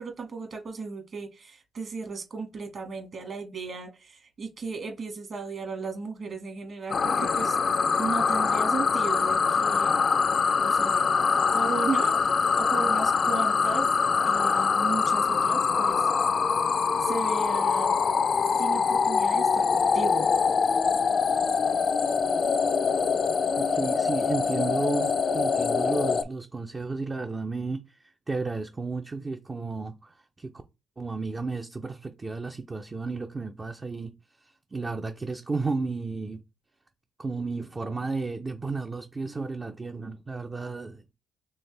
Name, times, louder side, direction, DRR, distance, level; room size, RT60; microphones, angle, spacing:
voice 1, 0.0-7.6 8.0-10.1 10.6-12.2 12.6-13.9 14.2-16.1 17.0-18.0 18.6-20.3, right 4 dB, 55° right, 1.5 m, -35 dB
sound 1, 6.9-26.2, left 5 dB, 45° left, 0.4 m, -24 dB
voice 2, 23.5-30.6 31.0-34.1 34.4-36.4 37.2-41.0, right 3 dB, 25° right, 0.5 m, -33 dB
4.4 x 3.2 x 3.3 m
cardioid pair, 90°, 0 cm